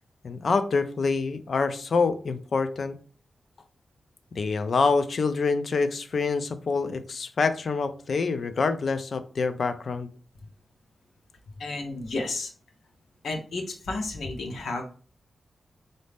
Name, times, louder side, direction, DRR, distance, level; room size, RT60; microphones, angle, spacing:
voice 1, 0.2-3.0 4.3-10.1, left 4 dB, 55° left, 10 dB, 0.4 m, -26 dB
voice 2, 11.6-12.5 13.2-14.8, left 2 dB, 80° left, 2 dB, 0.8 m, -32 dB
4.1 x 2.6 x 3.4 m, 0.40 s
wide cardioid pair, 145°, 0 cm